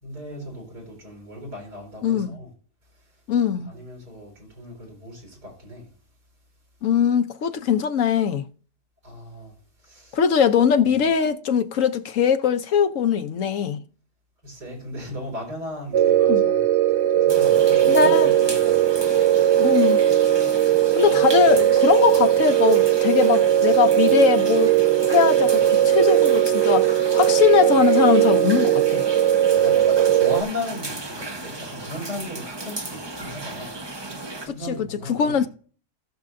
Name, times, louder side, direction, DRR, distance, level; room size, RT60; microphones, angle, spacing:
voice 1, 0.0-2.5 3.0-3.1 3.7-5.9 9.0-10.2 10.7-10.9 14.4-19.0 20.8-21.5 29.5-35.5, left 1 dB, 90° right, 5.3 m, -37 dB
voice 2, 2.0-2.4 3.3-3.7 6.8-8.4 10.1-13.8 16.3-16.5 17.9-18.3 19.6-20.0 21.0-24.8 25.0-29.1 34.5-35.5, left 7 dB, 60° left, 0.9 m, -21 dB
sound 1, 15.9-30.4, right 11 dB, 65° right, 0.6 m, -18 dB
sound 2, 17.3-34.5, right 2 dB, 20° right, 0.8 m, -35 dB
18.0 x 6.6 x 2.6 m
omnidirectional pair, 1.7 m